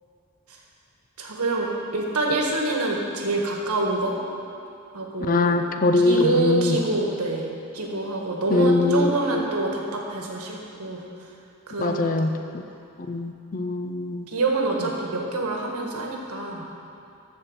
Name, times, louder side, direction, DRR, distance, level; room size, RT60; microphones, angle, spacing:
voice 1, 1.2-4.2 4.9-5.5 6.0-7.4 7.7-11.0 11.7-12.4 14.3-16.6, right 2 dB, 85° right, 0 dB, 1.5 m, -26 dB
voice 2, 5.3-6.8 8.5-9.4 11.8-12.6 13.1-14.3, left 3 dB, 40° left, 7 dB, 0.5 m, -22 dB
13.0 x 4.5 x 7.4 m, 2.6 s
head